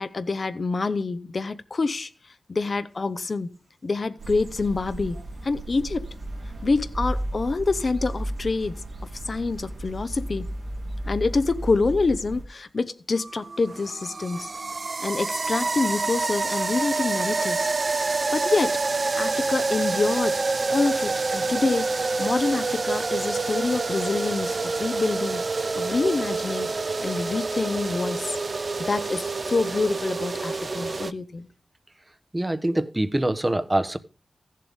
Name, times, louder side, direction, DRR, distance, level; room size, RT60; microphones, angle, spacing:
voice 1, 0.0-2.1 2.5-3.5 3.8-6.1 6.6-8.8 9.3-10.5 11.0-14.5 15.0-17.7 18.3-18.8 19.2-20.4 20.7-25.4 25.7-26.7 27.0-28.4 28.8-31.5, left 3 dB, 55° left, 0.9 m, -26 dB
sound 1, 4.2-12.4, right 1 dB, 85° right, 2.7 m, -34 dB
sound 2, 13.2-31.1, right 3 dB, 50° right, 0.5 m, -27 dB
voice 2, 32.3-34.0, right 1 dB, 20° right, 0.9 m, -24 dB
16.0 x 7.6 x 3.5 m
wide cardioid pair, 80°, 0 cm